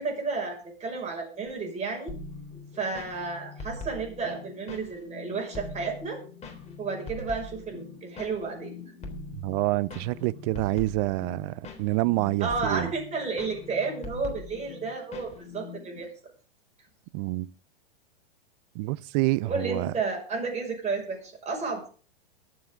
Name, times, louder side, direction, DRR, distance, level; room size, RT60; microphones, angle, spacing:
voice 1, 0.0-2.1 2.7-6.2 6.8-8.7 12.4-16.1 19.5-21.9, right 4 dB, 20° right, 6.0 m, -32 dB
sound 1, 2.1-16.0, left 3 dB, 20° left, 3.6 m, -42 dB
voice 2, 9.4-12.9 17.1-17.5 18.7-19.9, right 20 dB, 45° right, 0.6 m, -27 dB
23.0 x 7.7 x 3.8 m
hypercardioid pair, 110°, 30 cm